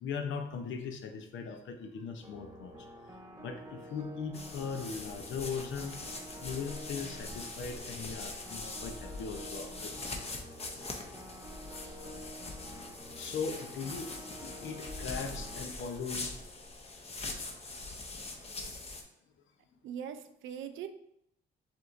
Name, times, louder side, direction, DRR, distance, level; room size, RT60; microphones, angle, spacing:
voice 1, 0.0-2.9 3.4-6.0 6.4-10.4 11.9-12.3 12.7-16.4 18.5-18.7, left 5 dB, 75° left, 6 dB, 0.7 m, -40 dB
sound 1, 2.2-15.6, equal, 15° right, 0.6 m, -49 dB
sound 2, 4.3-19.0, left 3 dB, 30° left, 0.7 m, -43 dB
voice 2, 19.8-20.9, right 8 dB, 75° right, 9 dB, 0.5 m, -41 dB
7.2 x 2.6 x 2.6 m, 0.74 s
cardioid pair, 90°, 20 cm